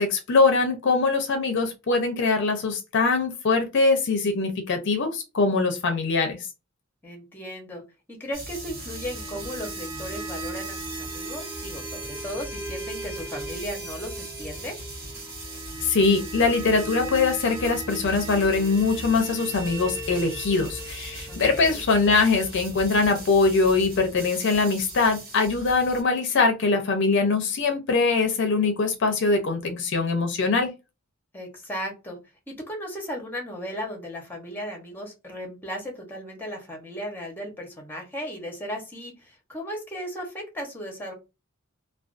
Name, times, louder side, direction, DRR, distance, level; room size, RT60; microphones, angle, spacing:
voice 1, 0.0-6.4 15.8-30.7, left 4 dB, 60° left, 0.5 m, -22 dB
voice 2, 7.0-7.8 8.1-14.8 21.3-21.8 31.3-32.2 32.5-41.1, equal, 10° left, 0.8 m, -36 dB
sound 1, 8.3-26.0, right 1 dB, 45° right, 1.0 m, -39 dB
sound 2, 8.5-23.4, right 2 dB, 15° right, 0.4 m, -39 dB
2.4 x 2.3 x 2.4 m
head